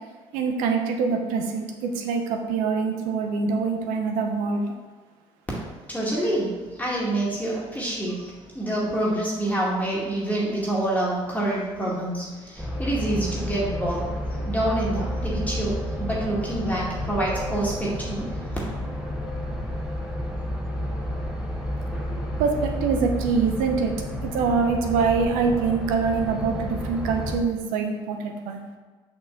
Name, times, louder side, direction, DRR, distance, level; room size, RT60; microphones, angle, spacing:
voice 1, 0.3-4.6 22.4-23.9 24.2-28.6, right 5 dB, 80° right, 4 dB, 0.9 m, -24 dB
voice 2, 5.9-14.1 14.4-18.2, right 1 dB, 10° left, -6 dB, 2.1 m, -27 dB
sound 1, 12.6-27.4, left 1 dB, 5° right, 1.6 m, -31 dB
6.0 x 5.8 x 3.8 m, 1.4 s
hypercardioid pair, 60°, 14 cm